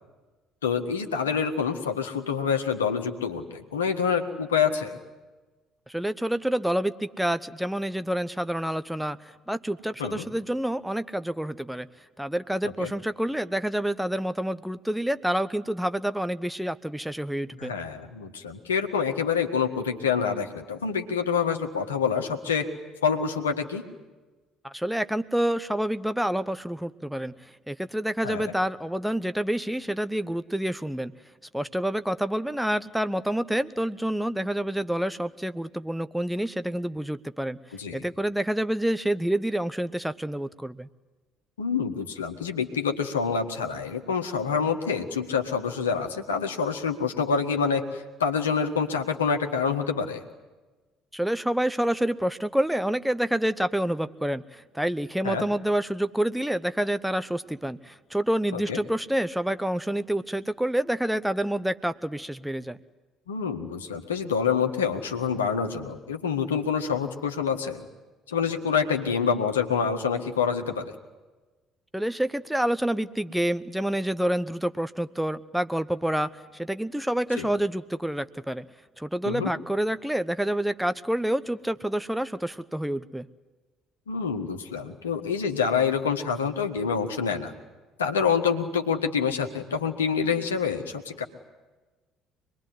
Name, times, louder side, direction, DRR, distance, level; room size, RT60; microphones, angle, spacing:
voice 1, 0.6-5.0 10.0-10.2 12.8-12.9 17.6-22.7 23.0-23.8 28.2-28.5 37.8-38.0 41.6-50.2 55.2-55.5 58.5-58.8 63.3-67.8 68.3-70.9 77.4-77.5 79.3-79.5 84.1-87.5 88.0-91.2, left 6 dB, 80° left, 5 dB, 1.7 m, -27 dB
voice 2, 5.9-9.2 9.5-11.9 12.2-17.7 24.6-27.3 27.7-31.1 31.5-37.6 37.9-40.9 51.1-62.8 71.9-78.6 79.0-83.3, right 1 dB, 5° right, 12 dB, 1.0 m, -28 dB
25.5 x 21.5 x 9.7 m, 1.2 s
figure-of-eight pair, 50°, 0 cm